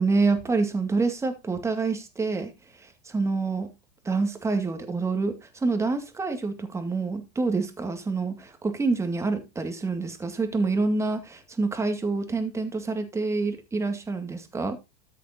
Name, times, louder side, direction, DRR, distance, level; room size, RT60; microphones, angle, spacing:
voice 1, 0.0-2.5 2.8-3.7 4.0-14.8, right 3 dB, 15° right, 2.1 m, -27 dB
13.5 x 6.5 x 2.8 m
hypercardioid pair, 110°, 21 cm